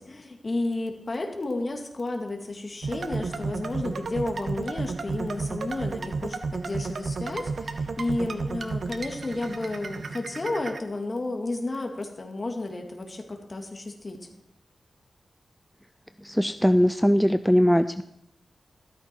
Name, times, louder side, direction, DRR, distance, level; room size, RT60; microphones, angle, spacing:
voice 1, 0.0-14.2, left 2 dB, 40° left, 3 dB, 2.1 m, -32 dB
sound 1, 2.8-10.8, right 4 dB, 65° right, 0.8 m, -33 dB
voice 2, 16.2-18.0, equal, ahead, 10 dB, 0.4 m, -20 dB
13.5 x 13.0 x 4.6 m, 0.77 s
wide cardioid pair, 110°, 0 cm